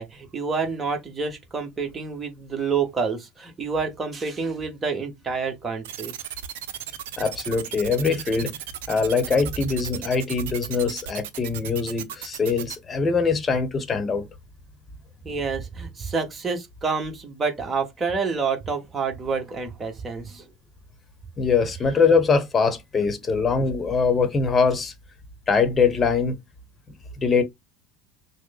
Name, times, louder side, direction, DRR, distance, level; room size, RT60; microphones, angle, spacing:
voice 1, 0.0-6.1 15.2-20.5, right 5 dB, 25° right, 1.4 m, -28 dB
sound 1, 5.8-12.8, right 11 dB, 75° right, 0.5 m, -35 dB
voice 2, 7.2-8.6 8.9-14.3 21.4-24.9 25.5-26.4 27.2-27.4, left 5 dB, 25° left, 1.0 m, -22 dB
6.1 x 2.2 x 2.3 m
hypercardioid pair, 80°, 0 cm